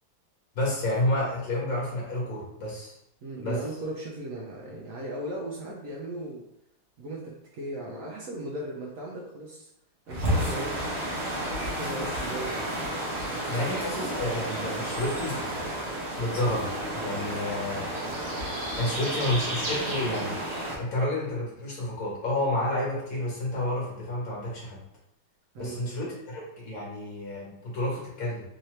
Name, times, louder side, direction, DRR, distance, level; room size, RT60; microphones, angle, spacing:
voice 1, 0.5-3.0 3.4-3.6 13.5-15.4 16.1-18.1 18.7-24.8 25.6-28.4, left 1 dB, 50° left, -5 dB, 1.6 m, -30 dB
voice 2, 3.2-6.5 7.0-9.7 10.1-11.0 11.6-12.6 25.5-26.2, right 1 dB, 80° right, -3 dB, 0.7 m, -37 dB
sound 1, 10.1-20.8, right 1 dB, 50° right, 1.0 m, -31 dB
3.7 x 2.8 x 3.1 m, 0.79 s
omnidirectional pair, 2.1 m